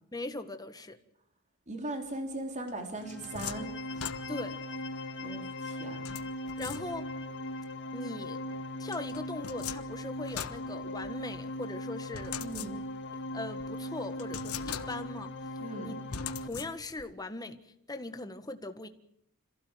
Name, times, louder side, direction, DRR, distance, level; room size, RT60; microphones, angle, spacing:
voice 1, 0.1-1.0 4.3-4.6 6.6-7.1 7.9-8.4 8.8-12.4 13.3-15.3 15.8-16.0 16.4-17.6 17.9-18.9, left 2 dB, 20° left, 1.6 m, -40 dB
voice 2, 1.7-3.7 5.2-6.2 12.4-12.8 15.6-15.9, right 2 dB, 35° right, 3.7 m, -39 dB
sound 1, 2.7-4.7 6.1-7.3 8.9-11.4 12.1-13.1 13.6-13.7 14.2-15.3 16.1-17.1, left 8 dB, 90° left, 1.3 m, -42 dB
sound 2, 2.9-16.5, left 1 dB, 55° left, 2.0 m, -39 dB
26.5 x 16.0 x 9.1 m
head